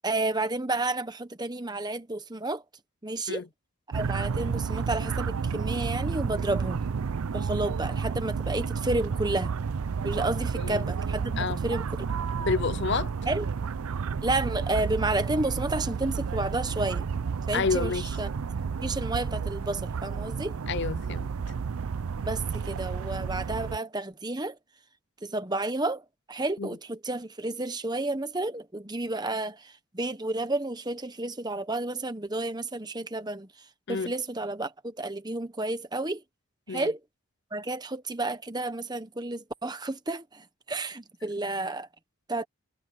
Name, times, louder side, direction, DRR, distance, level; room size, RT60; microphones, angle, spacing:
voice 1, 0.0-2.6 3.0-3.4 3.9-6.8 7.3-9.5 10.0-12.1 13.3-13.5 14.2-17.1 17.5-18.3 18.8-20.6 22.2-24.6 25.2-33.5 33.9-36.2 36.7-37.0 37.5-41.9 42.3-42.5, right 2 dB, 20° right, 1.1 m, -31 dB
sound 1, 3.9-23.8, right 5 dB, 75° right, 0.5 m, -31 dB
voice 2, 12.4-13.1 17.5-18.1 20.7-21.3 26.6-26.7 33.9-34.1 36.7-36.9, left 5 dB, 50° left, 0.6 m, -29 dB
head